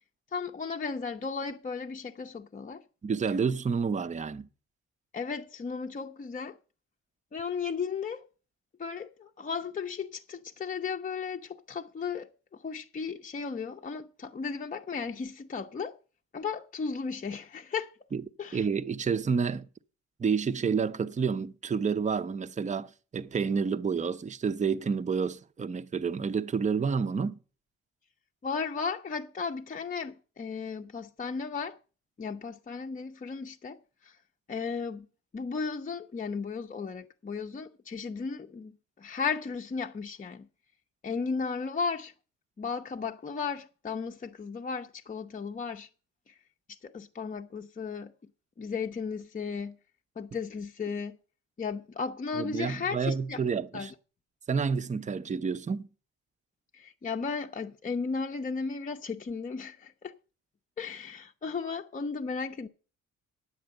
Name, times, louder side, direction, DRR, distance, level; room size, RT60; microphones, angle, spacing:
voice 1, 0.3-2.8 5.1-6.6 7.3-8.2 8.8-16.0 16.3-17.9 18.4-18.6 28.4-31.8 32.2-34.2 34.5-35.1 35.3-38.7 39.0-40.5 41.0-42.1 42.6-45.9 46.3-46.4 46.7-48.1 48.6-49.8 50.2-51.2 51.6-53.4 53.7-53.9 56.7-60.1 60.8-62.7, left 5 dB, 25° left, 0.7 m, -35 dB
voice 2, 3.0-4.5 18.1-18.2 18.5-19.7 20.2-27.4 52.3-53.9 54.5-55.9, right 5 dB, 25° right, 0.6 m, -29 dB
9.8 x 7.8 x 6.5 m
cardioid pair, 90°, 30 cm